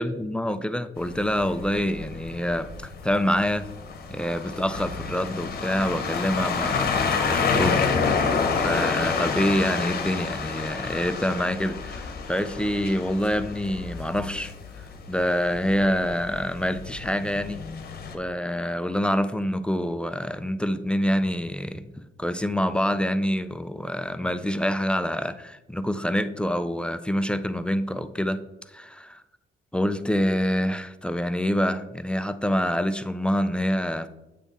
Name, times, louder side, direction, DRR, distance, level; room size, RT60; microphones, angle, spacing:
voice 1, 0.0-2.7 3.0-3.7 4.1-17.6 18.1-28.4 28.7-29.2 29.7-34.1, equal, 5° left, 11 dB, 0.4 m, -26 dB
sound 1, 1.0-18.1, left 5 dB, 50° left, 0.9 m, -29 dB
8.3 x 3.5 x 4.1 m, 0.98 s
cardioid pair, 90°, 20 cm